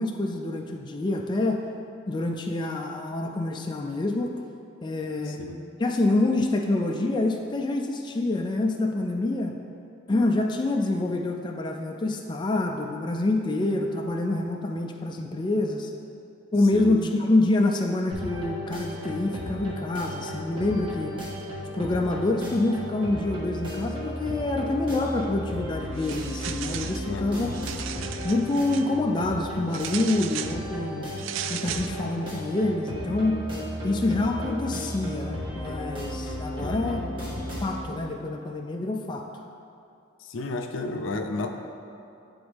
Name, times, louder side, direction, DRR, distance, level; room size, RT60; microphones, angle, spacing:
voice 1, 0.0-1.6 2.1-4.3 4.8-5.4 5.8-9.6 10.1-15.9 16.5-21.1 21.7-27.7 28.2-31.1 31.5-33.4 33.8-37.0 37.6-39.4, left 2 dB, 25° left, 2 dB, 0.3 m, -26 dB
voice 2, 5.3-5.6 16.7-17.0 27.1-27.5 36.6-37.0 40.2-41.5, left 2 dB, 80° left, 4 dB, 0.5 m, -32 dB
sound 1, 18.1-37.8, equal, 25° right, 1.4 m, -35 dB
sound 2, 25.9-27.0 27.4-28.9 29.7-30.6 31.2-31.9, right 10 dB, 80° right, 0.3 m, -36 dB
9.5 x 3.9 x 3.4 m, 2.6 s
head